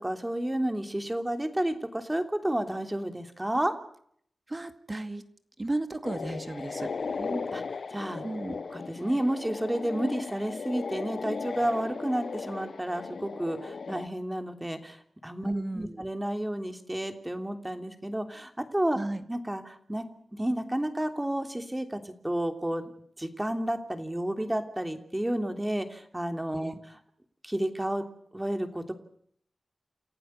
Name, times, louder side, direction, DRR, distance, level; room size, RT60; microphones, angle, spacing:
voice 1, 0.0-3.7 7.2-7.6 7.9-8.3 8.7-19.0 19.3-20.0 20.3-22.9 23.2-26.7 27.4-28.0 28.3-28.9, right 1 dB, 15° right, 6 dB, 3.1 m, -31 dB
voice 2, 4.5-5.2 5.6-7.3 8.2-8.6 15.4-16.0 18.9-19.2 26.5-26.8, right 2 dB, 30° right, 9 dB, 2.2 m, -34 dB
sound 1, 6.0-14.1, left 5 dB, 75° left, 0.9 m, -37 dB
29.0 x 15.5 x 8.2 m, 0.65 s
cardioid pair, 55°, 0 cm